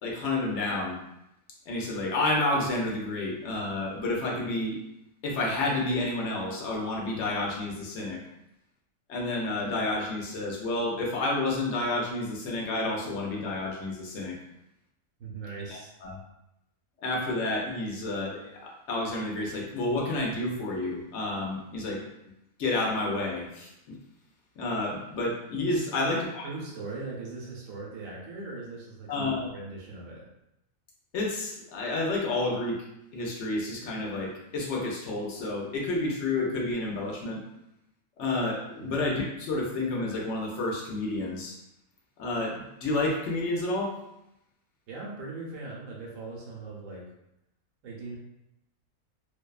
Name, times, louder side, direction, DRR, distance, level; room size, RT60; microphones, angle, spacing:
voice 1, 0.0-1.0 1.7-4.8 5.2-8.2 9.1-14.4 15.7-16.2 17.0-22.0 22.6-24.0 24.6-26.5 29.1-29.5 31.1-32.8 33.1-37.4 38.2-41.6 42.2-43.9, left 2 dB, 65° left, -2 dB, 0.8 m, -30 dB
voice 2, 15.2-15.9 26.0-26.2 26.4-30.3 38.8-39.0 44.9-47.0 47.8-48.2, right 3 dB, 80° right, -4 dB, 1.0 m, -40 dB
2.6 x 2.2 x 2.3 m, 0.85 s
omnidirectional pair, 1.4 m